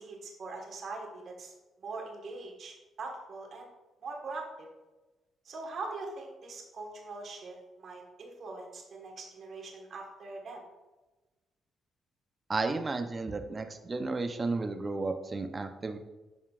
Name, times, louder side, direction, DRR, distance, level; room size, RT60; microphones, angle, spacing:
voice 1, 0.0-1.5 1.8-3.7 4.0-4.7 5.4-10.6, right 3 dB, 55° right, 1 dB, 1.6 m, -42 dB
voice 2, 12.5-16.0, right 3 dB, 30° right, 7 dB, 0.7 m, -33 dB
9.5 x 5.5 x 2.5 m, 1.1 s
cardioid pair, 90°, 0 cm